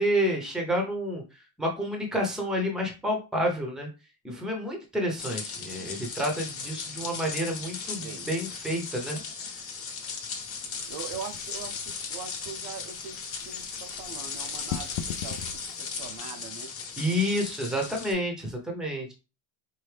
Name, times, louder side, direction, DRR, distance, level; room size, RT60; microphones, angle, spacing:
voice 1, 0.0-3.9 4.2-9.2 17.0-19.1, equal, ahead, 0.7 m, -29 dB
sound 1, 5.2-18.1, left 5 dB, 30° left, 1.0 m, -37 dB
voice 2, 8.0-8.3 10.9-13.2 13.4-15.5 15.8-16.8, right 6 dB, 60° right, 0.7 m, -41 dB
sound 2, 10.8-16.2, left 9 dB, 80° left, 0.6 m, -41 dB
4.6 x 2.7 x 3.3 m
cardioid pair, 180°, 44 cm